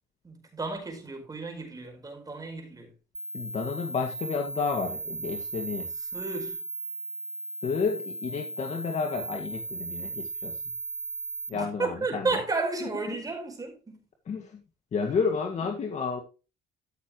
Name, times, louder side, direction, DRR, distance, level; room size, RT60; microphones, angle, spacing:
voice 1, 0.2-2.9 6.1-6.6 11.5-14.0, right 3 dB, 20° right, 5.0 m, -33 dB
sound 1, 3.1-11.5, right 2 dB, 5° right, 1.0 m, -37 dB
voice 2, 3.3-5.9 7.6-10.6 11.5-12.4 13.1-13.2 14.3-14.6 14.9-16.2, left 5 dB, 45° left, 2.0 m, -31 dB
14.5 x 6.8 x 3.1 m
cardioid pair, 110°, 17 cm